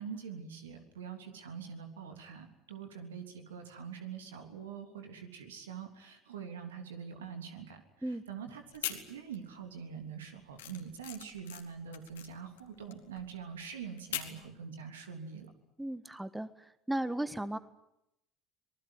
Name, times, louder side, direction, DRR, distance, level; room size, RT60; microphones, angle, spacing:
voice 1, 0.0-15.5, right 7 dB, 90° right, 6 dB, 3.2 m, -44 dB
sound 1, 8.7-9.6 9.9-14.5, left 12 dB, 85° left, 2.4 m, -42 dB
voice 2, 15.8-16.5 16.9-17.6, right 1 dB, 10° right, 13 dB, 1.6 m, -35 dB
26.0 x 19.5 x 9.6 m, 0.83 s
hypercardioid pair, 70°, 0 cm